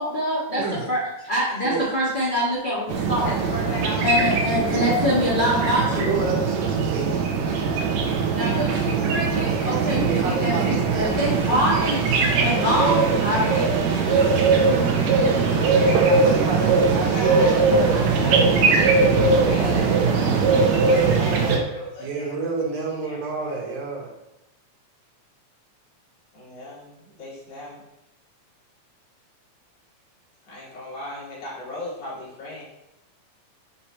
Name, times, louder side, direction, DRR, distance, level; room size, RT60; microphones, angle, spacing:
voice 1, 0.0-0.6 0.9-3.3 4.0-6.2 8.3-14.3 17.7-20.0, equal, 40° left, -8 dB, 0.7 m, -26 dB
sound 1, 2.9-21.6, right 4 dB, 70° right, 2.0 m, -21 dB
voice 2, 3.2-4.4 15.5-16.9 17.1-17.5 19.5-22.3 23.0-23.2 26.3-27.8 30.4-32.6, left 1 dB, 75° left, -7 dB, 3.6 m, -35 dB
voice 3, 6.1-7.2 10.1-11.4 16.2-18.9 22.0-24.1, right 4 dB, 85° right, -1 dB, 2.7 m, -29 dB
8.0 x 2.8 x 4.3 m, 0.87 s
omnidirectional pair, 3.5 m